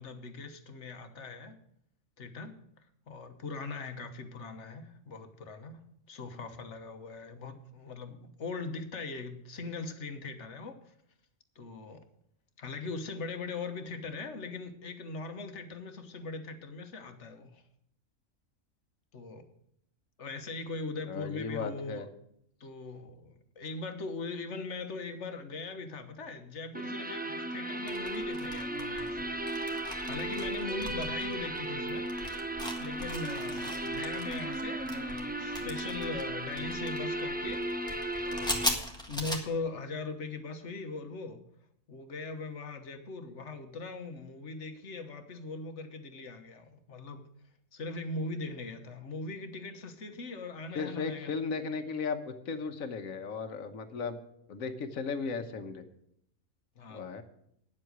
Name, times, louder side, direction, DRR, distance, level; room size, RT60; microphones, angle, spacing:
voice 1, 0.0-1.6 2.2-2.5 3.1-5.8 6.1-10.9 11.5-12.0 12.6-17.6 19.1-19.4 20.2-22.1 22.6-32.1 32.8-37.6 38.2-38.7 39.1-41.4 41.9-47.3 47.7-51.3 56.7-57.1, left 3 dB, 60° left, 7 dB, 1.5 m, -40 dB
voice 2, 21.1-22.1 50.7-54.2 54.5-55.9 56.9-57.2, left 5 dB, 80° left, 8 dB, 1.5 m, -36 dB
sound 1, 26.7-38.7, right 1 dB, 10° right, 0.4 m, -36 dB
sound 2, 27.9-39.4, left 1 dB, 5° left, 1.5 m, -40 dB
9.8 x 7.6 x 8.0 m, 0.74 s
omnidirectional pair, 1.4 m